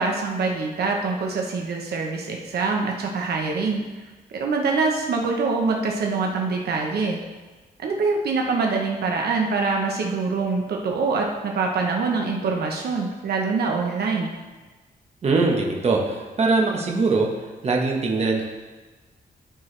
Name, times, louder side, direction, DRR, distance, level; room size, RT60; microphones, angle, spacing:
voice 1, 0.0-3.8 4.3-7.2 7.8-14.3, right 4 dB, 80° right, 1 dB, 1.0 m, -24 dB
voice 2, 15.2-17.3 17.6-18.4, right 3 dB, 40° right, 0 dB, 1.2 m, -21 dB
14.0 x 4.6 x 3.3 m, 1.3 s
wide cardioid pair, 145°, 16 cm